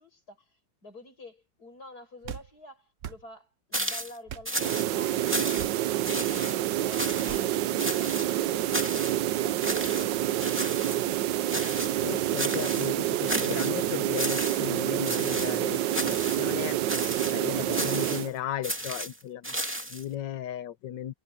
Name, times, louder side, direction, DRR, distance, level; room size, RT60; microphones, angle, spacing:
voice 1, 0.0-5.7 6.1-10.7 10.9-11.6, left 2 dB, 60° left, 8.1 m, -49 dB
sound 1, 2.2-2.5 3.0-3.2 4.3-4.5 5.6-5.8 7.3-7.5, right 10 dB, 55° right, 0.9 m, -39 dB
sound 2, 3.7-4.2 4.5-4.9 5.3-5.8 6.0-6.5 6.9-7.4 7.8-8.3 8.7-9.2 9.6-10.1 10.4-11.0 11.5-12.0 12.4-12.9 13.3-13.8 14.1-14.7 15.1-15.6 15.9-16.4 16.9-17.4 17.7-18.3 18.6-20.0, right 1 dB, 5° right, 2.5 m, -33 dB
sound 3, 4.6-18.3, right 13 dB, 85° right, 1.4 m, -28 dB
voice 2, 12.0-16.8 17.3-21.1, left 11 dB, 80° left, 1.5 m, -36 dB
omnidirectional pair, 1.9 m